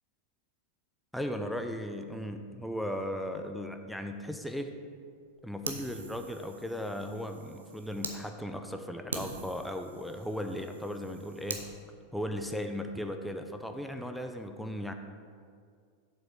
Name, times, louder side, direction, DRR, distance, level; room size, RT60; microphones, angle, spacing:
voice 1, 1.1-4.7 5.4-11.7 12.1-14.9, equal, ahead, 5 dB, 0.5 m, -37 dB
Fire, 5.6-8.2 8.6-8.7 9.1-11.7, right 4 dB, 75° right, 0.8 m, -43 dB
7.2 x 5.5 x 5.3 m, 2.1 s
figure-of-eight pair, 90°, 0 cm